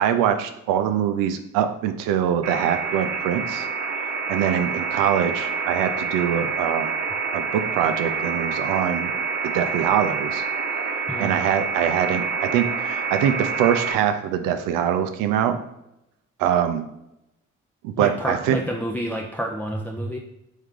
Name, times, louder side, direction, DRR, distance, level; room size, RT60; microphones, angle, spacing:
voice 1, 0.0-3.7 4.3-6.9 7.3-9.1 9.4-10.4 11.2-15.6 16.4-16.9 17.8-18.6, right 9 dB, 90° right, 8 dB, 0.5 m, -23 dB
sound 1, 2.4-13.9, right 5 dB, 60° right, 0.8 m, -27 dB
voice 2, 18.0-20.2, equal, 5° left, 0 dB, 0.5 m, -29 dB
3.6 x 3.2 x 3.6 m, 0.84 s
supercardioid pair, 55°, 32 cm